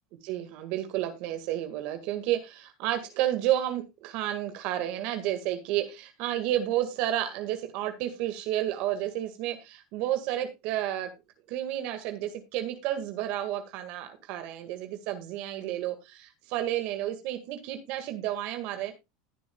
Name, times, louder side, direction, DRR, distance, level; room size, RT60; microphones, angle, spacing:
voice 1, 0.2-11.1 11.5-18.9, right 12 dB, 60° right, 7 dB, 1.9 m, -31 dB
20.0 x 7.1 x 2.3 m, 0.23 s
supercardioid pair, 125°, 2 cm